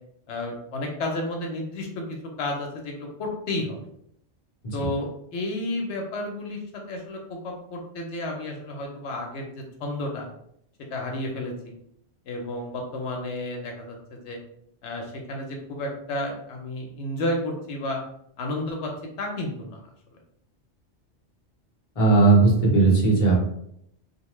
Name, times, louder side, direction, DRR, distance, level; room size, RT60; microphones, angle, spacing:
voice 1, 0.3-3.8 4.7-10.3 10.9-11.7 12.3-14.4 14.8-18.0 18.4-18.9 19.2-19.8, left 1 dB, 80° left, 1 dB, 0.9 m, -32 dB
voice 2, 22.0-23.4, right 3 dB, 35° left, -3 dB, 0.7 m, -17 dB
2.6 x 2.1 x 3.0 m, 0.74 s
omnidirectional pair, 1.2 m